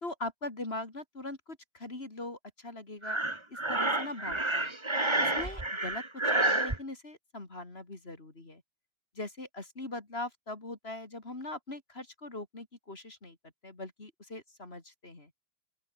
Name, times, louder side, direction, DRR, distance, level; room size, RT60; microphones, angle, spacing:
voice 1, 0.0-3.2 3.5-4.7 5.2-6.0 6.3-8.6 9.1-13.4 13.6-15.3, left 2 dB, 20° left, 2.8 m, -41 dB
Breathing, 3.0-6.8, right 2 dB, 15° right, 1.1 m, -29 dB
open air
omnidirectional pair, 3.8 m